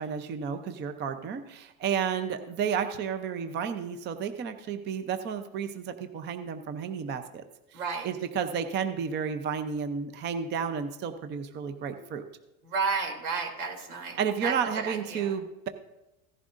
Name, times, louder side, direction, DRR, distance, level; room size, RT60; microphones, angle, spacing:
voice 1, 0.0-7.4 8.0-12.2 14.2-15.7, right 7 dB, 25° right, 8 dB, 0.6 m, -32 dB
voice 2, 7.7-8.1 12.6-15.3, right 5 dB, 90° right, 1 dB, 3.0 m, -32 dB
16.0 x 11.0 x 2.5 m, 0.97 s
supercardioid pair, 135°, 43 cm